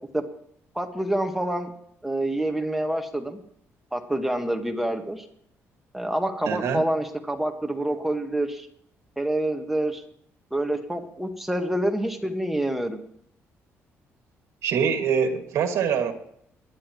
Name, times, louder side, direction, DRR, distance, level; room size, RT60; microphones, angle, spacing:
voice 1, 0.7-1.7 2.0-3.4 3.9-5.2 5.9-8.7 9.2-10.0 10.5-13.0, right 1 dB, 5° right, 4 dB, 1.6 m, -27 dB
voice 2, 6.5-6.8 14.6-16.1, right 7 dB, 75° right, 6 dB, 2.2 m, -24 dB
21.5 x 11.0 x 3.1 m, 0.70 s
cardioid pair, 140°, 5 cm